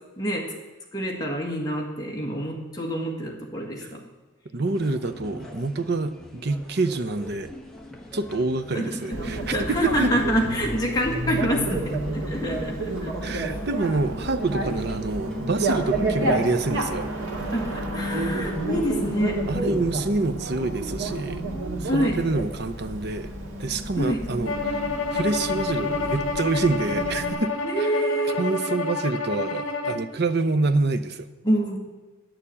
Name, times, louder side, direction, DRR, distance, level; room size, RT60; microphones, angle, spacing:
voice 1, 0.2-0.5 0.9-4.0 8.7-13.6 17.5-19.5 21.9-22.2 24.0-24.2 27.6-28.4 31.4-31.8, equal, 20° left, -1 dB, 1.8 m, -27 dB
voice 2, 4.5-7.5 8.1-10.1 13.2-17.1 19.5-21.4 21.8-23.3 23.6-24.8 25.1-27.5 27.8-27.9 28.2-31.3, right 3 dB, 50° right, 9 dB, 0.7 m, -26 dB
sound 1, 4.6-19.2, equal, 5° left, 1.1 m, -43 dB
Bicycle, 9.1-27.3, right 2 dB, 80° right, 1.9 m, -30 dB
Bowed string instrument, 24.5-30.1, left 3 dB, 70° left, 1.4 m, -29 dB
10.5 x 6.9 x 8.5 m, 1.2 s
head